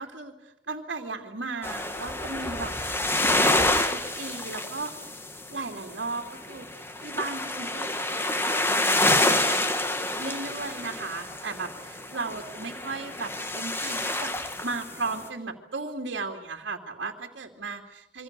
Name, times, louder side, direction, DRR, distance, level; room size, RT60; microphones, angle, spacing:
voice 1, 0.0-2.7 3.1-4.9 5.5-9.2 9.4-9.6 10.2-18.2, right 3 dB, 65° right, 1 dB, 2.6 m, -36 dB
sound 1, 1.6-6.0 6.3-15.3, left 1 dB, 15° left, 1.8 m, -28 dB
27.5 x 24.5 x 6.8 m, 0.81 s
head